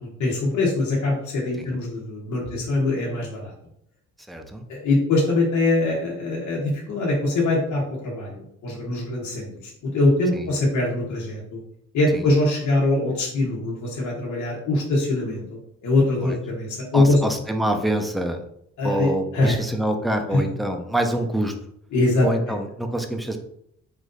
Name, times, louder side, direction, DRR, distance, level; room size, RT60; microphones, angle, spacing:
voice 1, 0.0-3.5 4.7-11.6 11.9-17.2 18.8-19.6 20.3-20.4 21.9-22.3, left 2 dB, 75° left, -4 dB, 1.3 m, -23 dB
voice 2, 4.3-4.6 10.3-10.5 12.1-12.3 16.2-16.4 16.9-18.4 18.8-21.5 22.2-23.4, right 1 dB, ahead, 5 dB, 0.6 m, -26 dB
5.0 x 2.6 x 3.8 m, 0.73 s
cardioid pair, 90°, 30 cm